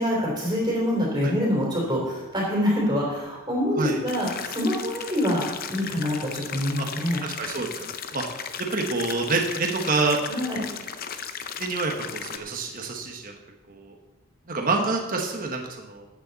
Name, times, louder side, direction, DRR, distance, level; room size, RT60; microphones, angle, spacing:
voice 1, 0.0-5.4 5.7-7.2 10.3-10.7, equal, 20° right, -3 dB, 3.5 m, -25 dB
sound 1, 4.1-12.4, left 7 dB, 40° left, 0.7 m, -36 dB
voice 2, 7.2-8.2 8.7-10.2 11.6-13.3 13.7-13.9 14.5-16.1, right 3 dB, 40° right, 1 dB, 1.2 m, -27 dB
14.0 x 8.9 x 4.1 m, 1.1 s
head